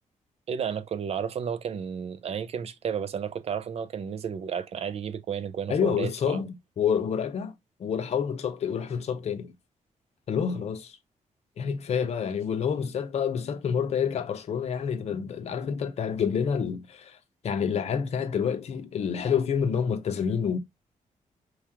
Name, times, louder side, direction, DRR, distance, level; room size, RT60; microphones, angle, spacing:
voice 1, 0.5-6.4, right 7 dB, 50° right, 0.6 m, -32 dB
voice 2, 5.7-7.5 7.8-9.5 10.3-11.0 11.6-17.2 17.4-20.6, left 7 dB, 50° left, 0.7 m, -28 dB
4.7 x 3.0 x 3.5 m
wide cardioid pair, 175°, 14 cm